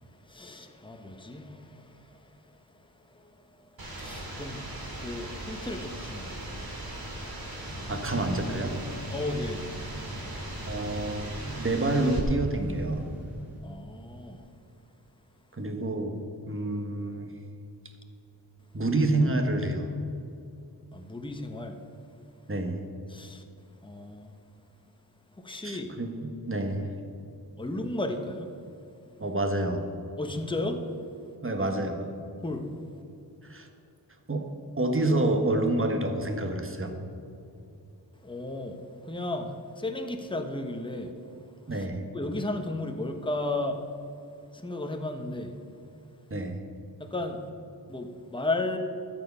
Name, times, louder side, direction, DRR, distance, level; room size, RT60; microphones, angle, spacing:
voice 1, 0.1-3.4 3.8-6.7 9.1-9.7 10.7-10.8 13.6-14.4 20.9-21.8 23.1-23.4 23.8-24.3 25.4-25.9 27.6-28.5 30.2-30.8 32.4-32.7 38.2-41.1 41.7-41.9 42.1-43.9 44.5-45.6 47.0-47.5 47.9-48.8, left 2 dB, 10° left, 5 dB, 1.0 m, -34 dB
sound 1, 3.8-12.2, right 1 dB, 60° right, 2.2 m, -39 dB
sound 2, 7.6-13.6, equal, 5° right, 2.7 m, -42 dB
voice 2, 7.9-8.7 10.7-13.0 15.5-16.2 16.5-17.3 18.7-19.9 22.5-22.8 25.6-26.9 29.2-29.8 31.4-32.1 33.4-33.7 34.3-34.4 34.8-36.9 41.7-42.0 46.3-46.6, right 2 dB, 30° right, 5 dB, 1.4 m, -28 dB
12.5 x 7.4 x 5.5 m, 2.7 s
wide cardioid pair, 65°, 41 cm